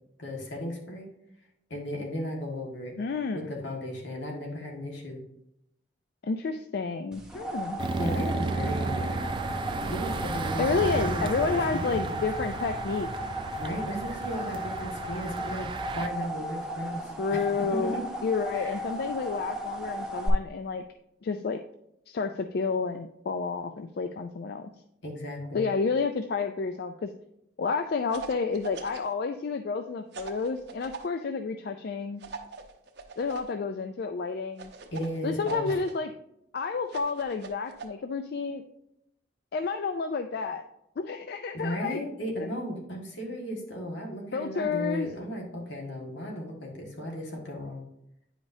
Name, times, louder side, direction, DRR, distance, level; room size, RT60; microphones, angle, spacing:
voice 1, 0.2-1.1 1.7-3.0 3.3-5.2 8.0-9.2 9.7-12.2 13.6-18.0 18.5-18.8 25.0-25.7 34.9-35.8 41.5-47.8, equal, 75° left, 0 dB, 1.6 m, -35 dB
voice 2, 3.0-3.5 6.2-7.8 10.6-13.1 17.2-18.0 18.2-20.8 21.2-21.6 22.1-24.7 25.5-27.1 27.6-32.2 33.2-34.7 35.2-36.1 36.5-38.6 39.5-40.6 41.0-42.0 44.3-45.1, left 4 dB, 55° left, 7 dB, 0.4 m, -30 dB
sound 1, 7.1-20.3, equal, 5° right, 0.9 m, -36 dB
sound 2, 7.8-16.1, right 3 dB, 25° right, 0.3 m, -33 dB
sound 3, 28.1-29.1 30.1-31.1 32.2-33.5 34.6-35.9 36.9-37.9, right 4 dB, 60° right, 0.7 m, -42 dB
9.5 x 5.0 x 2.7 m, 0.79 s
head